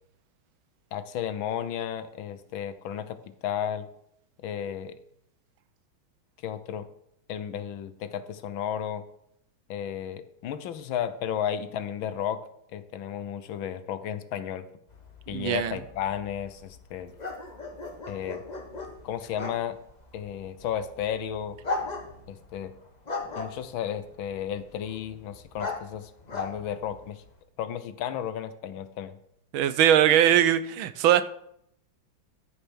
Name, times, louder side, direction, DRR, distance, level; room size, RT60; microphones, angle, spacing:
voice 1, 0.9-3.9 4.4-5.0 6.4-6.9 7.3-9.0 9.7-12.4 12.7-14.7 15.3-17.1 18.1-18.4 19.0-19.8 20.1-21.6 22.3-22.7 23.4-27.2 27.6-29.2, left 9 dB, 75° left, 12 dB, 1.6 m, -33 dB
sound 1, 14.9-27.4, left 3 dB, 25° left, 1.2 m, -39 dB
voice 2, 15.3-15.8 29.5-31.2, right 10 dB, 80° right, 14 dB, 1.5 m, -21 dB
13.0 x 6.7 x 6.3 m, 0.72 s
omnidirectional pair, 2.2 m